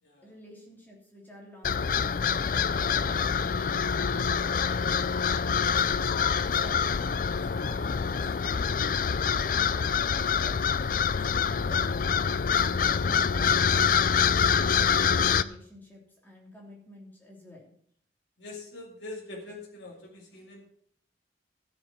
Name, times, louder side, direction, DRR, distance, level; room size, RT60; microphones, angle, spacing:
voice 1, 0.2-2.1 2.8-7.2 7.4-8.9 9.2-12.1 12.5-17.7, equal, 10° left, -2 dB, 3.2 m, -50 dB
sound 1, 1.6-15.4, left 6 dB, 50° left, 0.4 m, -26 dB
voice 2, 18.4-20.7, left 2 dB, 85° left, -2 dB, 2.3 m, -44 dB
13.0 x 7.1 x 6.0 m, 0.65 s
head